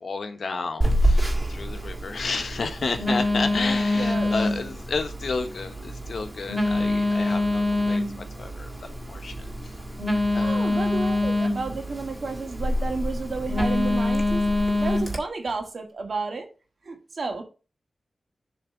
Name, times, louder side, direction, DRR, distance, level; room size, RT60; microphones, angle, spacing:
voice 1, 0.0-8.8 9.1-9.7 10.3-11.0, left 4 dB, 75° left, 1.0 m, -32 dB
Telephone, 0.8-15.2, left 1 dB, 25° right, 2.0 m, -25 dB
voice 2, 3.9-4.3 10.4-14.5 14.8-16.5 16.8-17.4, right 3 dB, 60° right, 1.7 m, -31 dB
7.3 x 3.5 x 5.1 m
wide cardioid pair, 110°, 0 cm